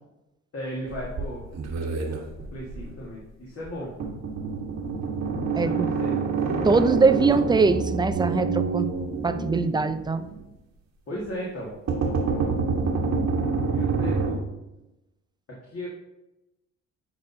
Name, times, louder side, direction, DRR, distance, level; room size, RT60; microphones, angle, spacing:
voice 1, 0.5-1.4 2.5-3.9 5.6-6.2 11.1-11.7 13.7-14.4 15.7-15.9, equal, 50° left, -5 dB, 1.9 m, -35 dB
sound 1, 0.9-2.9 3.7-3.8 4.0-10.4 11.9-14.4, right 4 dB, 55° right, 1.3 m, -27 dB
voice 2, 5.6-5.9 6.6-8.9 9.2-10.2, right 4 dB, 15° right, 10 dB, 0.4 m, -22 dB
9.8 x 4.1 x 2.7 m, 0.96 s
supercardioid pair, 70°, 32 cm